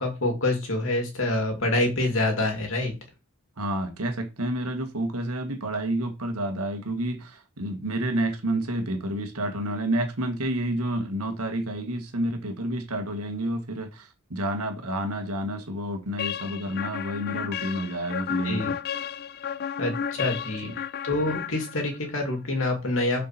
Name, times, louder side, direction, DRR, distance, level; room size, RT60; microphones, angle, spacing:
voice 1, 0.0-2.9 18.4-18.7 19.8-20.7 21.0-23.3, left 2 dB, 60° left, 2.7 m, -26 dB
voice 2, 3.6-18.7 20.6-20.7, right 1 dB, 85° right, 1.7 m, -29 dB
sound 1, 16.2-22.1, left 8 dB, 45° left, 0.4 m, -33 dB
6.9 x 5.2 x 4.4 m
head